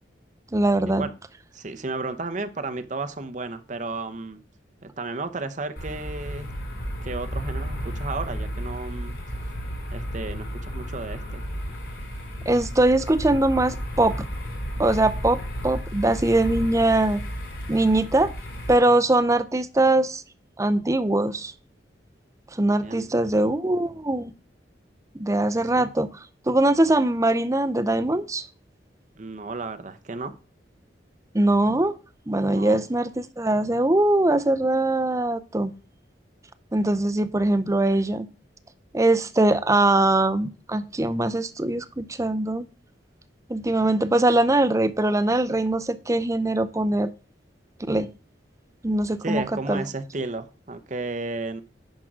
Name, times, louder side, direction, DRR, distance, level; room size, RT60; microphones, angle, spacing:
voice 1, 0.5-1.1 12.5-14.2 14.8-17.2 17.7-18.3 18.7-20.2 20.6-21.5 22.5-24.3 25.1-26.1 26.5-28.4 31.3-31.9 32.3-35.7 36.7-38.3 38.9-42.7 43.5-47.1 47.9-48.1 48.8-49.4 49.7-49.8, right 2 dB, 15° right, 0.6 m, -22 dB
voice 2, 1.5-4.4 4.8-6.5 7.0-9.1 9.9-11.4 22.6-23.2 25.8-25.9 29.2-30.3 32.5-32.8 49.2-51.6, right 3 dB, 45° right, 0.8 m, -33 dB
sound 1, 5.8-18.8, equal, 65° left, 3.5 m, -33 dB
10.5 x 3.8 x 6.1 m
head